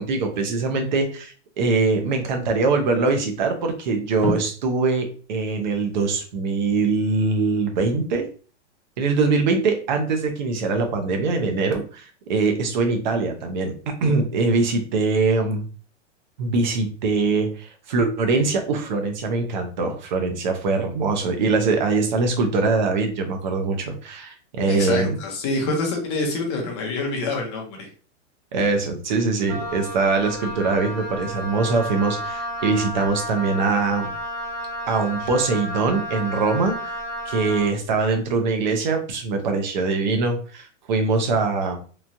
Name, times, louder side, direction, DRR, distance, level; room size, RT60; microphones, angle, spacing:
voice 1, 0.0-8.3 9.0-15.7 16.4-25.2 28.5-34.1 34.9-37.0 37.2-41.8, right 4 dB, 40° right, 4 dB, 0.6 m, -23 dB
voice 2, 24.7-27.9, left 3 dB, 25° left, 1 dB, 0.6 m, -26 dB
Wind instrument woodwind instrument, 29.5-37.7, equal, 85° right, 1.2 m, -32 dB
3.0 x 2.3 x 2.6 m, 0.38 s
hypercardioid pair, 165°, 36 cm